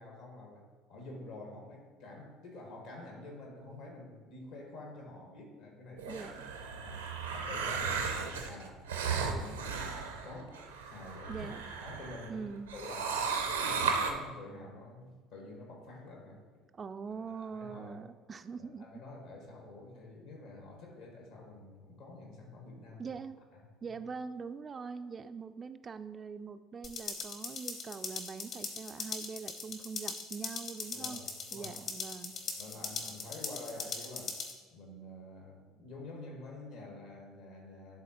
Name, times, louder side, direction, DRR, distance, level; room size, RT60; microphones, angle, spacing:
voice 1, 0.0-6.3 6.7-11.5 11.8-16.7 17.1-18.0 18.6-23.2 23.5-24.0 30.9-31.8 32.3-34.4 34.7-38.0, left 2 dB, 65° left, 0 dB, 1.6 m, -48 dB
Velociraptor Breathing, 6.0-12.3 12.7-14.1, right 5 dB, 80° right, 0.6 m, -35 dB
voice 2, 6.1-6.5 11.3-11.7 12.3-12.7 16.7-18.9 23.0-23.4 23.8-31.2 31.5-32.3, right 5 dB, 30° right, 10 dB, 0.3 m, -43 dB
sound 1, 26.8-34.5, left 4 dB, 45° left, 1.1 m, -40 dB
11.0 x 3.9 x 3.0 m, 1.4 s
figure-of-eight pair, 60°, 0 cm